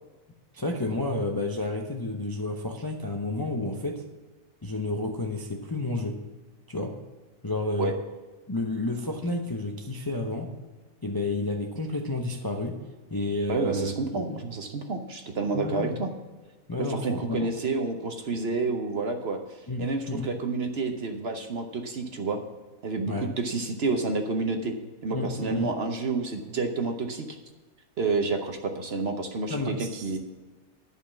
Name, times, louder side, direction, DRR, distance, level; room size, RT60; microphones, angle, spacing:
voice 1, 0.5-4.0 4.6-6.2 6.7-6.9 7.4-7.9 8.5-10.5 11.0-12.8 13.1-14.4 15.5-15.9 16.7-17.5 19.7-20.3 23.1-23.3 25.1-25.7 29.5-30.1, left 2 dB, 25° left, 2 dB, 0.5 m, -30 dB
voice 2, 13.5-16.1 16.8-19.4 19.8-22.4 22.8-24.7 25.0-27.4 28.0-30.2, right 3 dB, 50° right, 5 dB, 1.0 m, -29 dB
10.5 x 5.5 x 7.2 m, 1.3 s
omnidirectional pair, 1.6 m